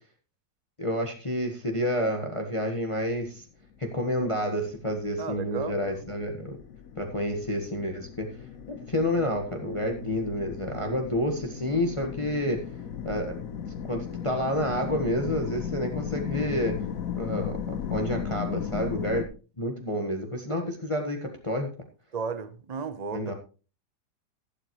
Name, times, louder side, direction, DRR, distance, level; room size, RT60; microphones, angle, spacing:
voice 1, 0.8-3.4 3.8-6.6 7.0-8.3 8.7-12.6 13.0-13.4 13.8-16.8 17.2-17.6 17.9-19.3 19.6-21.7 23.1-23.3, left 1 dB, 20° left, 3 dB, 1.3 m, -29 dB
sound 1, 4.0-19.2, left 8 dB, 55° left, 1.2 m, -36 dB
voice 2, 5.2-5.8 10.9-11.0 22.1-23.2, right 5 dB, 35° right, 12 dB, 0.6 m, -34 dB
12.5 x 11.5 x 3.1 m, 0.34 s
omnidirectional pair, 1.9 m